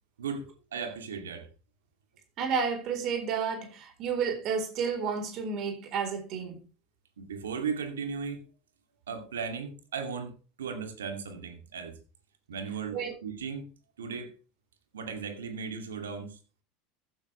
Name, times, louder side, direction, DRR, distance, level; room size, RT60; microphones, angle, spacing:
voice 1, 0.7-1.5 7.2-8.4 9.1-12.0 12.5-13.7 14.0-14.3 14.9-16.4, right 6 dB, 85° right, 2.6 m, -36 dB
voice 2, 2.4-6.6 12.9-13.1, right 6 dB, 50° right, 4.1 m, -31 dB
15.5 x 9.2 x 3.4 m
hypercardioid pair, 85°, 0 cm